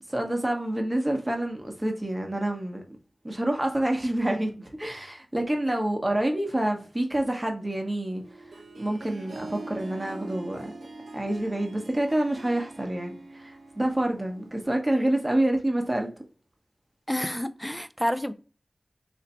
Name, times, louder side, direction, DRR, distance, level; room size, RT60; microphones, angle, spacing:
voice 1, 0.1-3.0 3.2-8.2 8.8-10.7 11.1-16.1, right 1 dB, 20° right, 0.9 m, -27 dB
Harp, 8.2-14.7, right 2 dB, 85° right, 0.6 m, -43 dB
voice 2, 17.1-18.3, equal, ahead, 0.4 m, -29 dB
3.2 x 2.6 x 4.1 m
wide cardioid pair, 65°, 0 cm